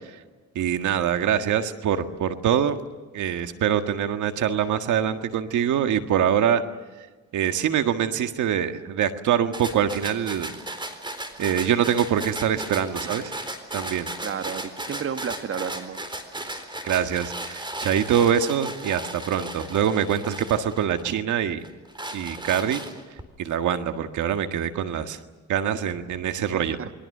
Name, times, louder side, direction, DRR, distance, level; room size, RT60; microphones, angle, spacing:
voice 1, 0.6-2.8 3.1-6.6 7.3-10.5 11.4-13.3 13.7-14.1 16.8-21.6 22.1-22.8 23.4-25.2 25.5-26.9, right 9 dB, 75° right, 8 dB, 1.8 m, -24 dB
sound 1, 9.5-21.2 21.6-23.2, right 1 dB, 15° right, 4.0 m, -36 dB
voice 2, 14.2-16.0 26.4-26.9, right 7 dB, 45° right, 9 dB, 1.4 m, -32 dB
29.0 x 22.5 x 6.7 m, 1.3 s
cardioid pair, 90°, 30 cm